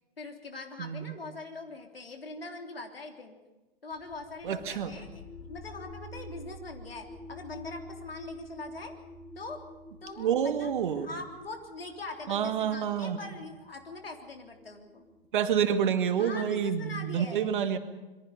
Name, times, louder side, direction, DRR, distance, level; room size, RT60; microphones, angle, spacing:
voice 1, 0.2-3.4 3.8-8.9 9.4-9.6 10.0-15.1 16.2-17.5, left 3 dB, 80° left, 3 dB, 3.6 m, -42 dB
voice 2, 0.8-1.1 4.4-4.9 10.2-11.1 12.3-13.2 15.3-17.8, right 8 dB, 60° right, 8 dB, 2.2 m, -28 dB
sound 1, 3.9-15.7, left 1 dB, 35° left, 5.6 m, -48 dB
26.5 x 22.5 x 5.2 m, 1.1 s
figure-of-eight pair, 110°, 29 cm